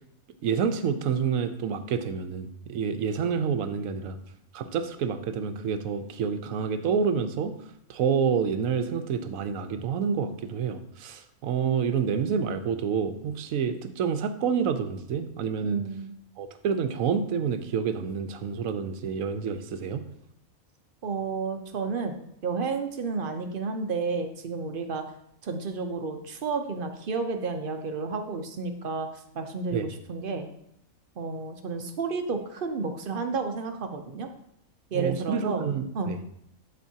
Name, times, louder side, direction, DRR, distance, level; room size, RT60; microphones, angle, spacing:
voice 1, 0.4-4.2 4.5-7.5 7.9-15.8 16.4-20.0 29.7-29.9 34.9-36.2, right 6 dB, 75° right, 9 dB, 1.0 m, -28 dB
voice 2, 15.6-16.1 21.0-25.0 25.4-29.1 29.3-30.5 31.2-34.3 34.9-35.6 35.9-36.1, right 4 dB, 50° right, 6 dB, 0.7 m, -31 dB
12.0 x 4.3 x 2.7 m, 0.74 s
omnidirectional pair, 1.5 m